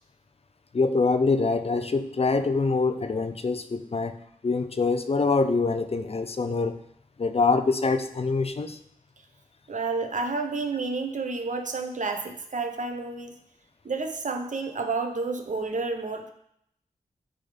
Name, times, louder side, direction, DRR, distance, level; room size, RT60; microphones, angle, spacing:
voice 1, 0.7-4.2 4.4-6.8 7.2-8.8, left 4 dB, 45° left, 9 dB, 0.7 m, -24 dB
voice 2, 9.7-13.3 13.8-16.3, right 3 dB, 60° right, 5 dB, 1.0 m, -30 dB
9.2 x 3.8 x 5.1 m, 0.73 s
cardioid pair, 55°, 14 cm